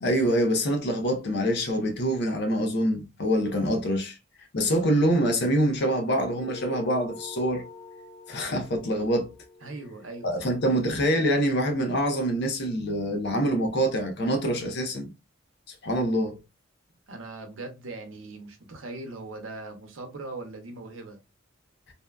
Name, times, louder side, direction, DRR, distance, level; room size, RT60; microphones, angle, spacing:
voice 1, 0.0-4.2 4.5-7.7 8.3-9.3 10.2-15.1 15.8-16.4, equal, 60° left, 0.7 m, -25 dB
sound 1, 6.3-11.1, left 2 dB, 15° left, 0.3 m, -45 dB
voice 2, 9.6-10.5 17.1-21.2, right 2 dB, 80° right, 0.7 m, -40 dB
2.7 x 2.2 x 2.3 m
head